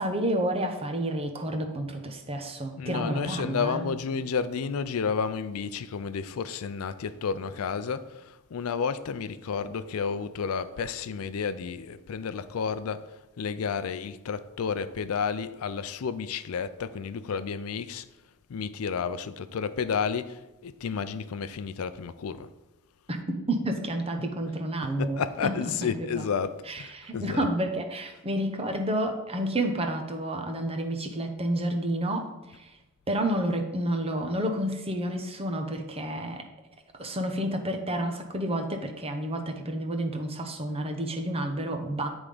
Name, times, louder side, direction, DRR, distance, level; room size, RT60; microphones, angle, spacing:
voice 1, 0.0-3.9 23.1-23.2 23.5-26.3 26.6-32.7 33.1-36.4 36.9-42.1, right 1 dB, 25° right, 0.8 m, -30 dB
voice 2, 2.8-8.0 8.5-13.0 13.4-18.0 18.5-20.4 20.6-22.5 25.0-27.5, left 6 dB, 75° left, 0.4 m, -31 dB
9.5 x 3.6 x 5.0 m
head